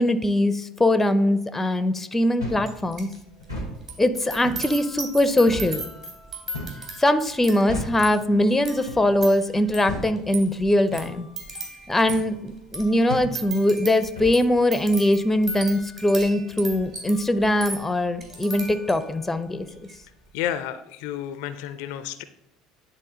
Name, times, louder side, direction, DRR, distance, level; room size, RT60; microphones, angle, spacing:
voice 1, 0.0-3.1 4.0-5.8 7.0-11.3 11.9-19.7, left 1 dB, 10° left, 11 dB, 0.6 m, -21 dB
sound 1, 2.4-2.7 3.4-3.7 4.4-4.7 5.5-5.7 6.5-6.8 7.7-8.0 8.9-9.1 9.9-10.1 10.9-11.1 12.1-12.3 13.1-13.3 14.1-14.4, left 1 dB, 85° right, 2.3 m, -33 dB
sound 2, 2.6-3.2 3.4-19.2 19.6-20.0, right 2 dB, 30° right, 2.4 m, -38 dB
voice 2, 20.3-22.2, left 11 dB, 60° left, 12 dB, 0.4 m, -31 dB
9.9 x 4.0 x 3.7 m, 0.84 s
figure-of-eight pair, 65°, 2 cm